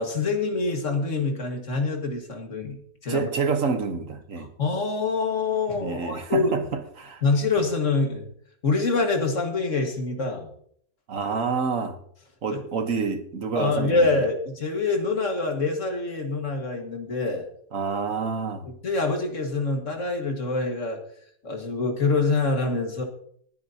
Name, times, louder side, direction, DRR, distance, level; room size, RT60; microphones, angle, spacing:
voice 1, 0.0-3.3 4.4-6.5 7.2-8.3 8.6-10.5 12.5-12.6 13.6-17.4 18.6-21.0 21.4-23.0, left 3 dB, 55° left, 3 dB, 2.1 m, -25 dB
voice 2, 3.1-4.5 5.8-7.2 11.1-12.0 12.4-14.2 17.7-18.7, right 5 dB, 60° right, 8 dB, 1.4 m, -28 dB
20.0 x 9.6 x 2.8 m, 0.64 s
omnidirectional pair, 1.6 m